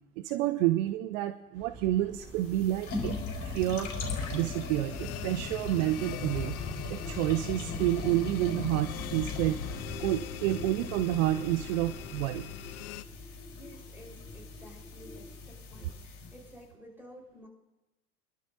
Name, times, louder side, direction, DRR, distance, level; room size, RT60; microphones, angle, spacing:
voice 1, 0.2-3.9 4.3-6.6 6.9-9.6 10.0-12.5, right 15 dB, 55° right, 12 dB, 0.7 m, -29 dB
sound 1, 1.5-12.3, right 4 dB, 40° right, 4.5 m, -50 dB
sound 2, 2.2-16.6, left 4 dB, 40° left, 4.3 m, -39 dB
sound 3, 4.2-13.0, left 13 dB, 70° left, 0.7 m, -44 dB
voice 2, 13.0-17.5, equal, 5° right, -2 dB, 4.3 m, -53 dB
25.5 x 12.0 x 2.7 m, 1.0 s
hypercardioid pair, 85°, 45 cm